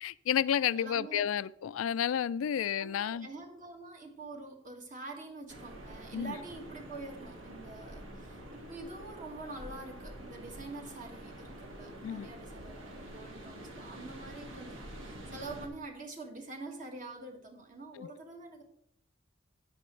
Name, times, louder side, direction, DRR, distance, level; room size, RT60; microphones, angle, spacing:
voice 1, 0.0-3.3 6.1-6.3 12.0-12.3, left 9 dB, 85° left, 0.3 m, -31 dB
voice 2, 0.6-1.3 2.8-18.6, right 2 dB, 40° right, 1.8 m, -46 dB
sound 1, 5.5-15.7, right 1 dB, 75° right, 1.9 m, -47 dB
13.0 x 9.4 x 3.2 m
head